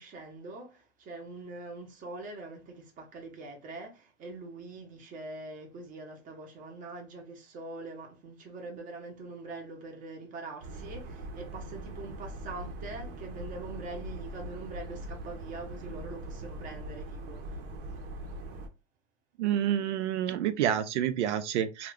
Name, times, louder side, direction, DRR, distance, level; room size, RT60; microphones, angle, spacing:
voice 1, 0.0-17.6 17.9-18.0, right 2 dB, 20° right, 0.9 m, -43 dB
sound 1, 10.6-18.7, right 1 dB, 45° right, 0.9 m, -41 dB
voice 2, 19.4-21.9, right 10 dB, 75° right, 0.6 m, -28 dB
2.8 x 2.4 x 3.3 m
supercardioid pair, 140°, 35 cm